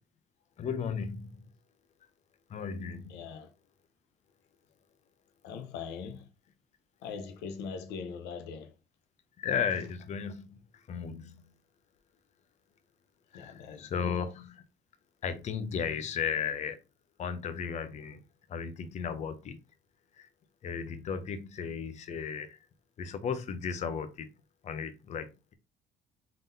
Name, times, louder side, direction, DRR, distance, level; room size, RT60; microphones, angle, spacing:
voice 1, 0.6-1.5 2.5-3.2 9.4-11.4 13.3-14.5 15.2-16.8 17.2-18.2 18.5-19.6 20.1-20.3 20.6-22.6 23.0-24.3 24.6-25.5, left 7 dB, 45° left, 0.6 m, -35 dB
voice 2, 3.1-3.5 5.4-6.3 7.0-8.7 13.3-14.2, left 6 dB, 85° left, 0.7 m, -41 dB
3.8 x 3.6 x 2.7 m
cardioid pair, 110°, 17 cm